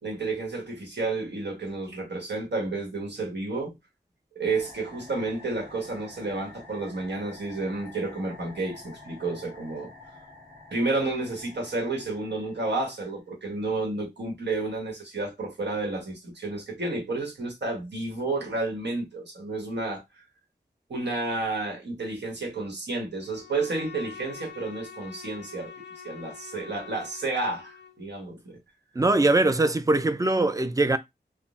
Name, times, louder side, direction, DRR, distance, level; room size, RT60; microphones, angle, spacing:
voice 1, 0.0-3.7 4.3-9.9 10.7-20.2 20.9-28.6, right 3 dB, 80° right, 1.2 m, -31 dB
sound 1, 4.5-13.3, left 2 dB, 55° right, 1.9 m, -49 dB
Bowed string instrument, 23.2-28.0, left 6 dB, 85° left, 0.4 m, -45 dB
voice 2, 29.0-31.0, right 2 dB, 20° right, 0.4 m, -22 dB
3.6 x 2.0 x 2.4 m
wide cardioid pair, 75°, 18 cm